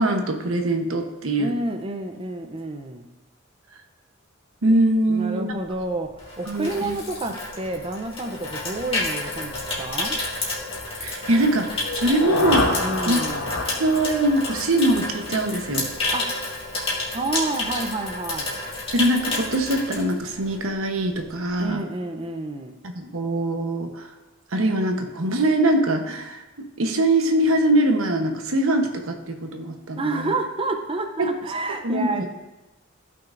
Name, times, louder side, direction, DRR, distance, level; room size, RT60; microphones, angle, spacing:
voice 1, 0.0-1.5 4.6-5.4 6.5-7.0 11.0-12.7 13.1-13.2 13.8-15.9 18.9-21.8 22.9-24.1 24.5-30.3 31.2-31.3 31.8-32.3, right 1 dB, 85° right, 5 dB, 0.9 m, -22 dB
voice 2, 1.4-3.1 5.1-10.2 12.8-13.5 16.1-16.3 17.1-18.6 21.6-22.8 30.0-32.3, right 2 dB, 25° right, 5 dB, 0.5 m, -29 dB
Water tap faucet / Sink (filling or washing), 5.7-20.7 21.0-21.3, left 2 dB, 30° left, 1.9 m, -30 dB
sound 1, 11.8-15.7, left 3 dB, 80° left, 1.1 m, -29 dB
14.5 x 5.9 x 2.5 m, 1.0 s
head